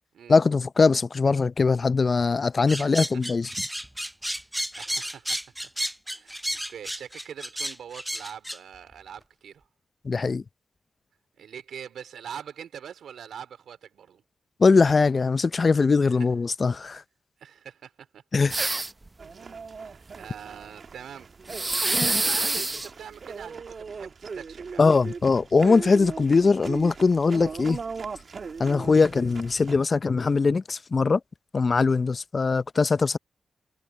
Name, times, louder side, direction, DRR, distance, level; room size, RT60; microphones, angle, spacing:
voice 1, 0.3-3.5 10.0-10.4 14.6-17.0 18.3-18.7 21.8-22.0 24.8-27.8 28.6-31.2 31.5-33.2, left 4 dB, 50° left, 0.6 m, -21 dB
sound 1, 2.7-8.6, equal, 5° right, 0.5 m, -32 dB
voice 2, 4.7-5.4 6.1-9.6 11.4-14.2 16.0-16.1 17.4-18.2 19.7-21.3 22.0-24.9, right 8 dB, 85° right, 4.2 m, -43 dB
sound 2, 18.5-19.1 21.5-22.9, right 2 dB, 30° right, 0.8 m, -26 dB
sound 3, 19.2-29.7, right 5 dB, 60° right, 1.5 m, -39 dB
supercardioid pair, 45°, 0 cm